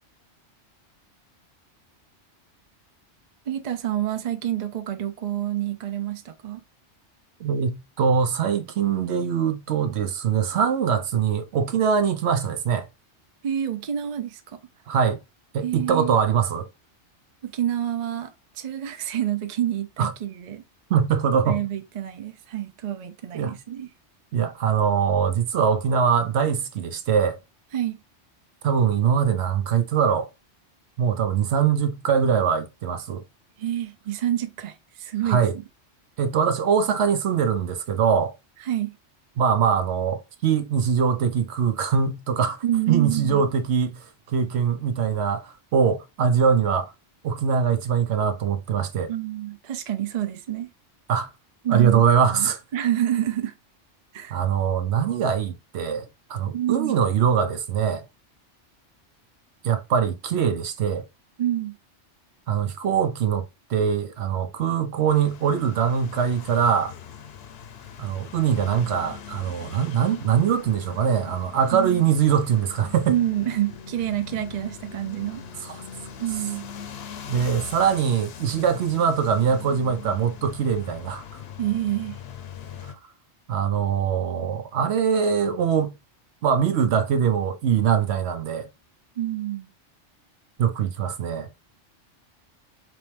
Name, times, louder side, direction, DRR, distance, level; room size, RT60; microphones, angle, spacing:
voice 1, 3.5-6.6 13.4-14.6 15.6-16.1 17.4-20.6 21.5-23.9 27.7-28.0 33.6-35.5 38.6-38.9 42.6-43.4 49.1-50.7 51.6-52.0 52.3-53.5 54.1-54.4 56.5-57.0 61.4-61.8 71.7-72.1 73.1-75.4 76.2-76.7 81.6-82.2 89.2-89.7, right 12 dB, 45° right, 0.6 m, -28 dB
voice 2, 7.4-12.9 14.9-15.2 15.5-16.7 20.0-20.1 20.9-21.6 23.3-23.6 24.3-27.4 28.6-30.3 31.0-33.2 35.2-35.5 36.2-38.3 39.4-46.9 47.2-49.1 51.1-51.3 51.7-52.6 54.3-58.1 59.6-61.0 62.5-66.9 68.0-73.1 75.6-75.8 77.3-81.2 83.5-85.9 86.4-88.7 90.6-91.5, right 7 dB, 70° right, 0.9 m, -22 dB
sound 1, 65.1-82.9, left 7 dB, 65° left, 0.8 m, -41 dB
4.0 x 3.0 x 3.3 m
omnidirectional pair, 1.2 m